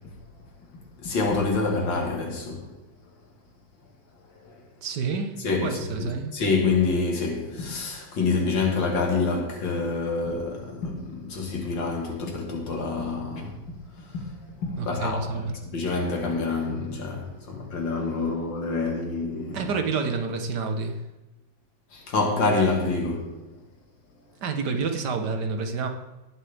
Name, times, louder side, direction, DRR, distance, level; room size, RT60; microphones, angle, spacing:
voice 1, 1.0-2.7 5.4-13.6 14.0-14.3 14.6-19.6 21.9-23.4, left 3 dB, 85° left, 2.5 m, -27 dB
voice 2, 4.8-6.4 14.8-15.5 19.5-21.0 24.4-25.9, right 4 dB, 70° right, 1.7 m, -29 dB
18.5 x 7.8 x 3.5 m
omnidirectional pair, 2.0 m